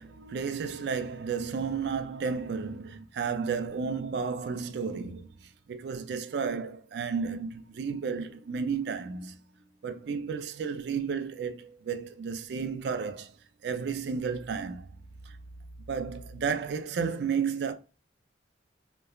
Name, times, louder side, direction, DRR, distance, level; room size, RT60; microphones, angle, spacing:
voice 1, 0.0-9.4 9.8-13.4 13.6-14.9 15.3-15.4 15.9-17.7, right 5 dB, 65° right, 0.3 m, -32 dB
3.0 x 2.1 x 2.3 m
head